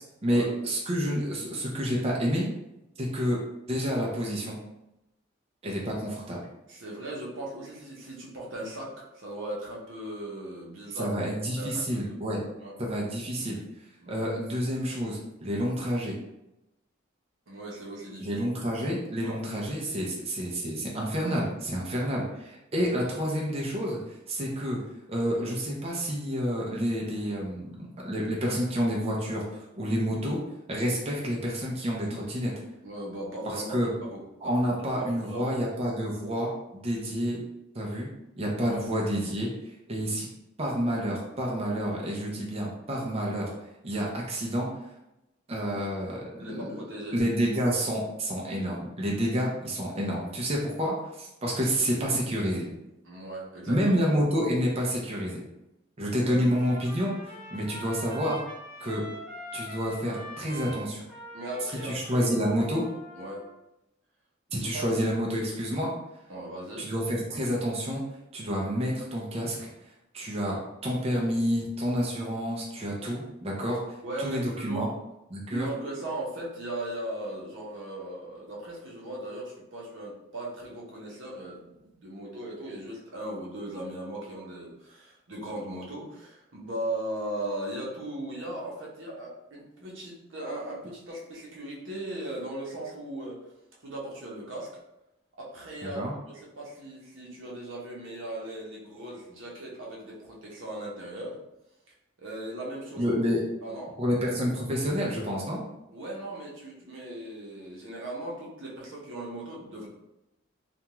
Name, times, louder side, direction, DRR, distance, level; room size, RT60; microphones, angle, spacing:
voice 1, 0.2-2.5 3.0-3.4 3.7-4.6 5.6-6.4 11.0-12.4 12.8-13.6 14.1-16.1 18.2-24.8 25.1-29.4 29.8-30.4 30.7-32.5 33.7-33.9 34.4-37.4 37.7-38.1 38.4-39.5 39.9-40.3 40.6-43.5 43.8-44.7 45.5-46.8 47.1-52.7 53.7-55.4 56.0-57.1 57.5-58.4 58.8-59.0 59.5-61.0 61.8-62.8 64.5-65.9 66.8-68.0 68.3-69.7 70.1-73.8 74.2-74.9 75.3-75.7 95.8-96.1 103.0-103.4 104.0-105.6, equal, 30° right, -3 dB, 0.5 m, -29 dB
voice 2, 6.7-11.2 11.6-12.0 12.6-12.7 14.0-14.2 17.5-18.4 19.2-19.4 22.8-22.9 32.8-34.2 34.9-35.6 38.7-38.8 46.4-47.1 53.0-53.9 56.1-56.6 61.3-62.6 63.1-63.4 64.5-64.8 66.3-66.9 74.0-74.9 75.5-93.4 93.8-94.7 95.4-96.0 96.3-101.4 102.2-103.0 103.6-104.0 105.9-109.9, right 1 dB, 75° right, -4 dB, 0.8 m, -38 dB
Trumpet, 56.4-63.5, equal, 5° left, 0.7 m, -44 dB
2.5 x 2.2 x 2.9 m, 0.89 s
head